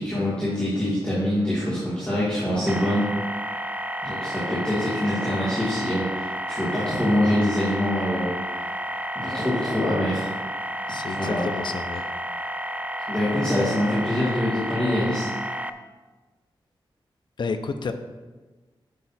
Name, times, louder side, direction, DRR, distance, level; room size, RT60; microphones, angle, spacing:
voice 1, 0.0-3.1 4.0-8.3 9.2-10.3 11.1-11.5 13.1-15.3, left 1 dB, 10° left, -10 dB, 2.1 m, -24 dB
sound 1, 2.7-15.7, equal, 15° right, 0.4 m, -31 dB
voice 2, 10.9-12.0 17.4-17.9, left 4 dB, 60° left, 7 dB, 0.6 m, -30 dB
8.5 x 6.1 x 4.2 m, 1.3 s
wide cardioid pair, 140°, 9 cm